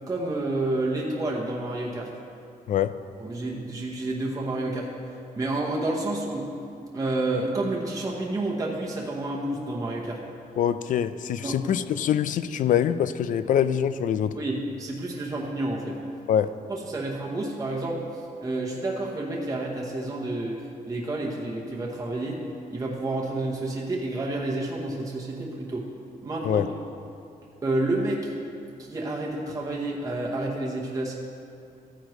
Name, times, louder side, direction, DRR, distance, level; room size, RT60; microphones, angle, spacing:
voice 1, 0.1-2.1 3.2-4.9 5.4-6.5 6.9-10.2 11.4-11.6 14.3-16.0 16.7-22.4 22.7-25.9 26.2-26.6 27.6-28.3 28.8-31.2, right 2 dB, 20° right, -3 dB, 1.0 m, -29 dB
voice 2, 10.6-14.4 16.3-16.5 26.4-26.7, left 9 dB, 65° left, 13 dB, 0.4 m, -24 dB
14.0 x 9.5 x 3.1 m, 2.6 s
wide cardioid pair, 150°, 15 cm